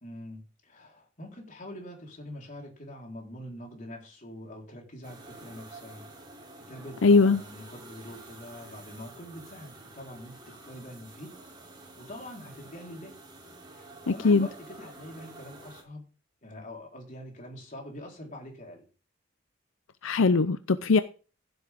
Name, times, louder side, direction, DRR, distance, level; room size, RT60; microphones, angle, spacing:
voice 1, 0.0-6.1 6.7-11.3 11.8-13.1 13.7-16.1 16.4-18.8, left 1 dB, 40° left, 4.2 m, -44 dB
sound 1, 5.0-15.8, right 2 dB, 25° right, 3.4 m, -49 dB
voice 2, 7.0-7.4 14.1-14.5 20.0-21.0, left 4 dB, 80° left, 0.6 m, -21 dB
15.5 x 7.9 x 3.7 m
head